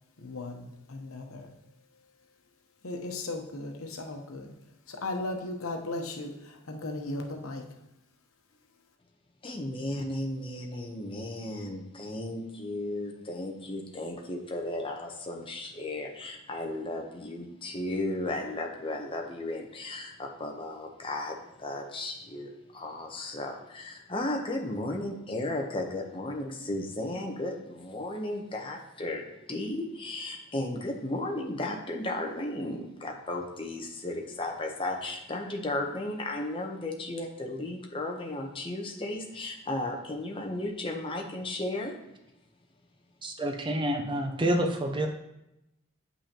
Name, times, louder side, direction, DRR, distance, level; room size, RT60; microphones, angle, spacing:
voice 1, 0.2-1.5 2.8-4.5 4.9-7.6, left 2 dB, 90° left, 3 dB, 0.9 m, -36 dB
voice 2, 9.4-41.9, left 1 dB, 25° left, 1 dB, 0.8 m, -35 dB
voice 3, 43.2-45.1, right 1 dB, 25° right, 4 dB, 0.6 m, -28 dB
8.4 x 5.6 x 2.9 m, 0.89 s
head